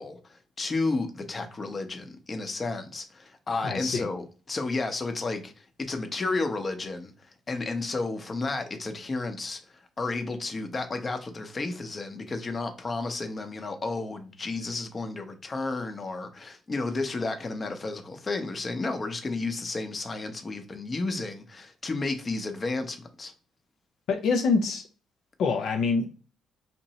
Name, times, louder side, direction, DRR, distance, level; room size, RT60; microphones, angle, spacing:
voice 1, 0.0-23.3, left 3 dB, 35° left, 0.7 m, -32 dB
voice 2, 3.6-4.1 24.1-24.9 25.4-26.1, left 4 dB, 75° left, 0.5 m, -25 dB
2.8 x 2.5 x 4.1 m
cardioid pair, 90°, 0 cm